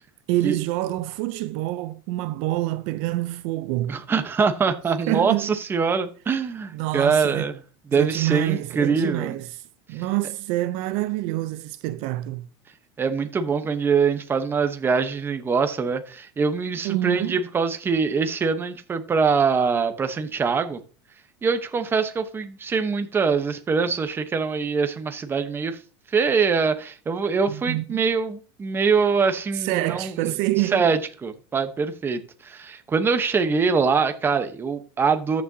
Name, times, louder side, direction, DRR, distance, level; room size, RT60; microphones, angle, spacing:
voice 1, 0.3-4.0 5.1-5.5 6.7-7.5 7.9-9.6 9.9-12.5 16.8-17.4 27.5-27.8 29.5-30.8, right 16 dB, 60° right, 0.6 m, -26 dB
voice 2, 3.9-7.6 7.9-9.4 13.0-20.8 21.4-25.8 26.1-30.3 30.6-35.4, right 5 dB, 20° right, 1.0 m, -23 dB
14.0 x 6.3 x 2.8 m
supercardioid pair, 140°, 12 cm